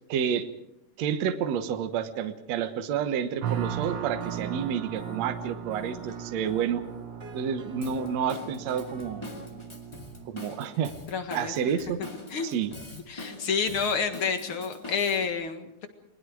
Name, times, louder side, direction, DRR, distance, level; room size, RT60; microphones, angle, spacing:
voice 1, 0.1-0.5 1.0-6.8 7.3-9.3 10.3-10.9 11.3-12.0 12.4-12.7, right 8 dB, 60° right, 8 dB, 2.2 m, -29 dB
sound 1, 3.4-10.3, right 9 dB, 85° right, 1.0 m, -37 dB
sound 2, 3.5-9.5, right 1 dB, 20° right, 3.0 m, -47 dB
Drum kit / Drum, 7.8-15.3, left 2 dB, 10° left, 1.6 m, -44 dB
voice 2, 11.1-11.7 12.3-12.6 12.9-15.9, left 5 dB, 45° left, 7 dB, 2.2 m, -29 dB
29.5 x 21.5 x 4.8 m, 0.80 s
omnidirectional pair, 3.8 m